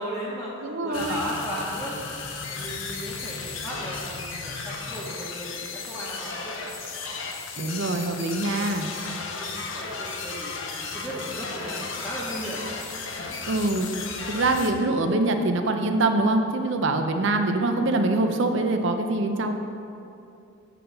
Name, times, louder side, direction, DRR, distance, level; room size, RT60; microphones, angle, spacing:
voice 1, 0.0-0.5 0.8-2.0 2.5-7.2 7.6-10.5 10.8-12.7, equal, 5° right, -10 dB, 1.0 m, -36 dB
voice 2, 0.6-1.2 7.6-8.9 13.4-14.0 14.3-19.5, right 2 dB, 60° right, 6 dB, 0.6 m, -24 dB
sound 1, 0.9-14.7, left 4 dB, 60° left, 0.7 m, -35 dB
8.4 x 3.9 x 6.9 m, 2.7 s
head